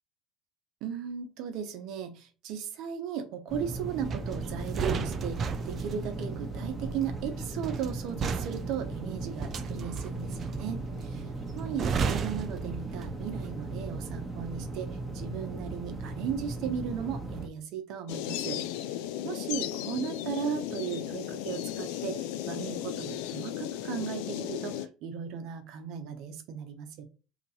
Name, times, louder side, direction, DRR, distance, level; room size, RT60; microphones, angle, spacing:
voice 1, 0.8-11.3 11.5-18.6 19.2-27.0, right 7 dB, 65° right, 6 dB, 0.8 m, -36 dB
sound 1, 3.5-17.5, right 3 dB, 5° right, 1.1 m, -37 dB
sound 2, 4.0-13.4 13.7-14.0, right 6 dB, 40° right, 0.4 m, -35 dB
sound 3, 18.1-24.9, left 12 dB, 80° left, 0.3 m, -35 dB
2.9 x 2.6 x 4.1 m, 0.33 s
supercardioid pair, 95°, 0 cm